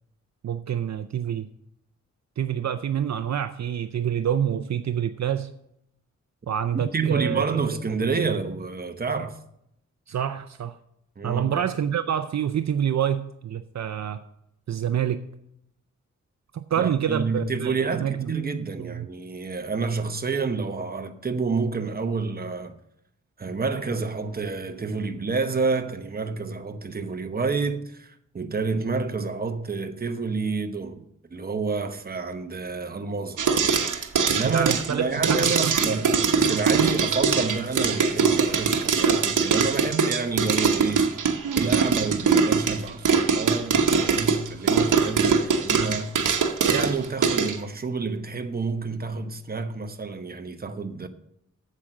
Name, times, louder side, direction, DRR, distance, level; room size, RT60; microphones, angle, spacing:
voice 1, 0.4-1.5 2.4-5.5 6.5-7.6 10.1-10.7 11.2-14.2 14.7-15.3 16.5-18.3 18.8-19.1 34.4-35.8, right 9 dB, 65° right, 0.5 m, -27 dB
voice 2, 6.7-9.4 11.2-11.4 16.8-22.8 23.4-31.0 31.3-33.4 33.8-41.1 41.6-46.1 46.7-51.1, right 4 dB, 30° right, 0.9 m, -29 dB
sound 1, 33.4-47.6, right 5 dB, 90° right, 1.0 m, -22 dB
8.3 x 7.5 x 6.5 m
wide cardioid pair, 145°, 30 cm